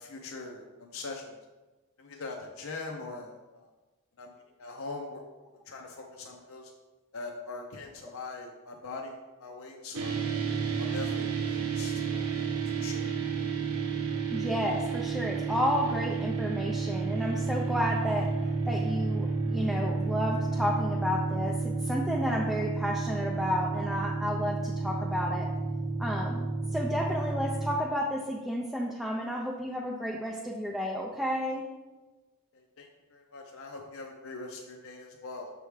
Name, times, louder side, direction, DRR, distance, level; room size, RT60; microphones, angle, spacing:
voice 1, 0.0-1.3 2.0-3.7 4.2-4.3 4.6-5.2 5.7-6.7 7.1-9.1 9.4-10.2 10.8-11.5 11.7-12.5 12.8-13.2 32.5-35.5, left 3 dB, 65° left, 1 dB, 0.6 m, -42 dB
sound 1, 9.9-27.8, right 4 dB, 75° right, 0.7 m, -31 dB
voice 2, 14.3-18.3 18.7-25.5 26.0-31.7, equal, ahead, -3 dB, 0.4 m, -31 dB
6.8 x 3.4 x 4.7 m, 1.2 s
head